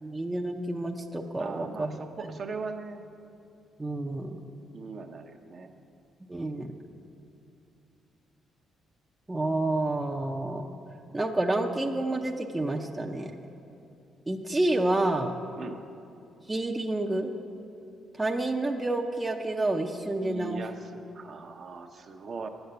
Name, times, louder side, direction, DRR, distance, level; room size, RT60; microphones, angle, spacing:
voice 1, 0.0-2.0 3.8-4.4 6.3-6.7 9.3-10.7 11.1-13.3 14.3-15.3 16.5-17.3 18.2-20.6, right 2 dB, 15° right, 2 dB, 0.6 m, -29 dB
voice 2, 1.4-3.0 4.7-5.7 15.5-15.8 20.2-22.5, right 4 dB, 50° right, 4 dB, 0.8 m, -39 dB
9.9 x 8.0 x 6.8 m, 2.7 s
cardioid pair, 90°, 0 cm